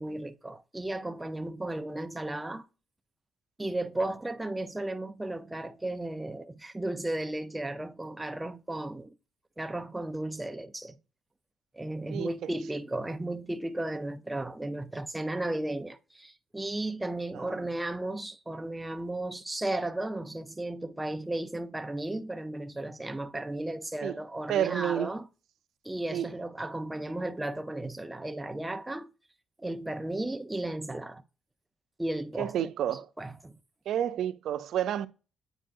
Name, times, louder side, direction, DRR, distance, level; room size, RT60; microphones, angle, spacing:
voice 1, 0.0-2.7 3.6-9.2 9.6-11.0 11.7-25.3 25.8-29.1 29.6-31.2 32.0-32.7 33.2-33.6, right 1 dB, 10° right, 0.7 m, -34 dB
voice 2, 12.1-12.5 17.3-17.6 24.0-24.1 24.5-25.1 26.1-26.3 32.4-33.1 33.9-35.1, right 10 dB, 75° right, 0.5 m, -30 dB
9.0 x 4.5 x 2.6 m
cardioid pair, 90°, 0 cm